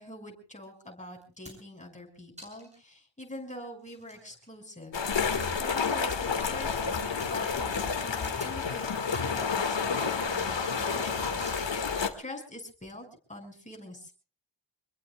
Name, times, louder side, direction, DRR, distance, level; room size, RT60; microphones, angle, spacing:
voice 1, 0.0-11.4 11.7-14.1, left 1 dB, 15° left, 2 dB, 5.9 m, -45 dB
sound 1, 0.6-0.7 1.2-1.8 2.4-2.9 3.3-3.4 3.8-6.2 6.5-7.3 8.2-8.6 9.0-9.4 9.9-10.6 11.4-12.0 13.0-13.2, equal, 15° right, 7.8 m, -51 dB
sound 2, 4.9-12.1, left 5 dB, 75° left, 2.2 m, -30 dB
27.0 x 22.0 x 2.4 m, 0.37 s
wide cardioid pair, 120°, 45 cm